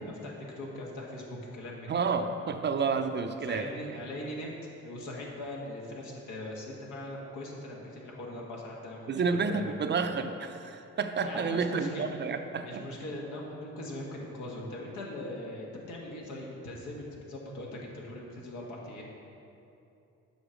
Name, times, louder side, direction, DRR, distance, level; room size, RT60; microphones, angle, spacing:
voice 1, 0.0-2.1 3.4-4.5 4.8-9.1 9.5-9.8 11.2-12.1 12.6-19.0, left 1 dB, 85° left, -2 dB, 1.4 m, -40 dB
voice 2, 1.9-3.7 9.1-12.8, right 5 dB, 35° right, 7 dB, 0.5 m, -30 dB
7.0 x 5.5 x 5.0 m, 2.8 s
cardioid pair, 90°, 30 cm